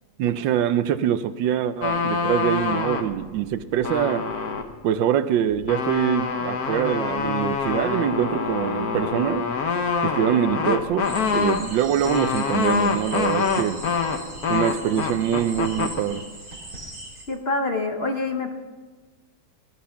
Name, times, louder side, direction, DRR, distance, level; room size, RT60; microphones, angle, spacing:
voice 1, 0.2-4.3 4.8-9.5 10.0-13.8 14.5-16.2, right 10 dB, 80° right, 13 dB, 1.4 m, -24 dB
sound 1, 1.8-3.1 3.6-4.7 5.5-16.0, left 5 dB, 55° left, 1.6 m, -25 dB
sound 2, 11.0-17.2, right 2 dB, 50° right, 4.0 m, -40 dB
voice 2, 17.3-18.5, left 3 dB, 40° left, 4 dB, 1.1 m, -26 dB
19.0 x 12.0 x 5.8 m, 1.3 s
omnidirectional pair, 2.0 m